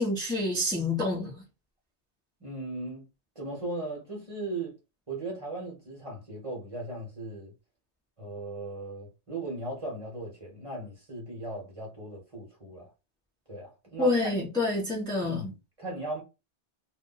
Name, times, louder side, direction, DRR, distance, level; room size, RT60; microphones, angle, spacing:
voice 1, 0.0-1.4 14.0-15.5, left 2 dB, 5° left, 0.9 m, -28 dB
voice 2, 2.4-3.1 3.3-4.7 5.1-7.5 8.2-12.9 13.5-14.1 15.2-16.2, right 2 dB, 30° right, 1.3 m, -37 dB
2.6 x 2.5 x 3.8 m
omnidirectional pair, 1.1 m